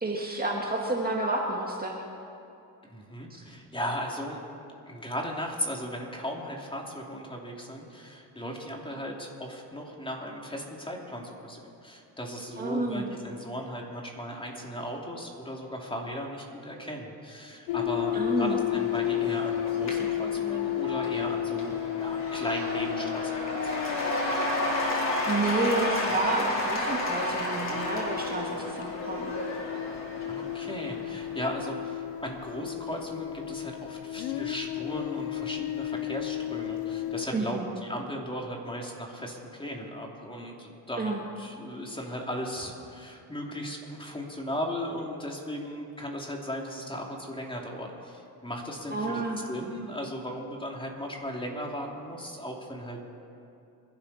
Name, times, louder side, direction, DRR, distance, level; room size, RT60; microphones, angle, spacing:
voice 1, 0.0-2.0 3.3-3.4 12.6-13.1 18.1-18.6 25.3-29.3 37.3-37.7 41.0-41.2 48.9-49.4, right 2 dB, 20° right, -1 dB, 2.0 m, -30 dB
voice 2, 2.9-4.4 4.9-24.0 30.3-49.2 49.5-53.0, equal, 10° left, -1 dB, 3.0 m, -37 dB
sound 1, 17.7-37.3, left 13 dB, 90° left, 0.5 m, -33 dB
Cheering / Applause / Crowd, 18.1-31.6, left 1 dB, 40° left, 3.9 m, -32 dB
27.0 x 11.5 x 4.3 m, 2.6 s
cardioid pair, 85°, 41 cm